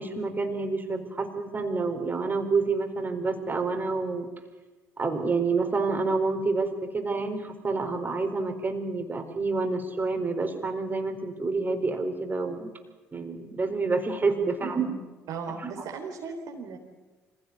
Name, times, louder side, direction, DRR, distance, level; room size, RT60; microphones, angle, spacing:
voice 1, 0.0-4.3 5.0-12.7 13.1-15.0 15.6-15.8, right 3 dB, 30° right, 5 dB, 4.2 m, -28 dB
voice 2, 15.3-16.8, right 5 dB, 65° right, 2 dB, 3.5 m, -37 dB
25.0 x 17.0 x 9.6 m, 1.2 s
hypercardioid pair, 55°, 7 cm